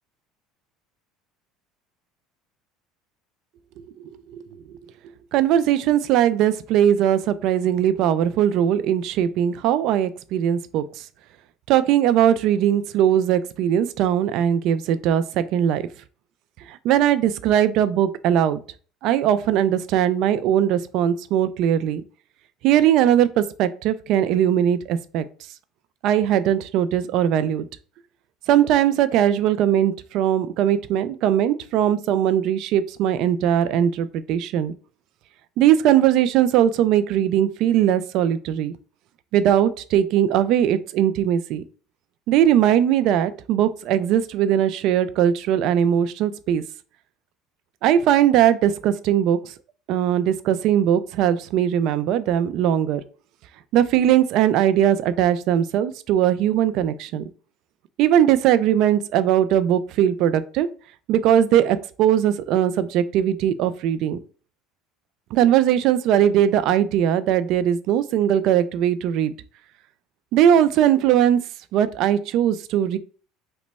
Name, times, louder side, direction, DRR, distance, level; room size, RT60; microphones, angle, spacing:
voice 1, 5.3-11.1 11.7-15.9 16.7-18.6 19.0-22.0 22.6-25.2 26.0-27.7 28.5-34.7 35.6-38.7 39.3-41.6 42.3-46.6 47.8-49.5 49.9-53.0 53.7-57.2 58.0-60.7 61.1-64.2 65.3-69.3 70.3-71.4 71.7-73.0, right 10 dB, 65° right, 13 dB, 0.3 m, -20 dB
3.0 x 2.1 x 4.0 m, 0.40 s
supercardioid pair, 110°, 0 cm